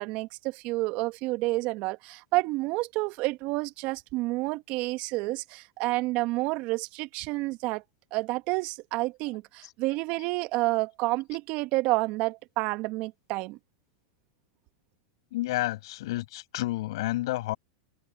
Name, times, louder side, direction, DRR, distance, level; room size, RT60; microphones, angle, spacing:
voice 1, 0.0-7.8 8.1-13.6, right 21 dB, 50° right, 1.5 m, -29 dB
voice 2, 15.3-17.6, left 17 dB, 70° left, 7.5 m, -30 dB
hypercardioid pair, 110°, 3 cm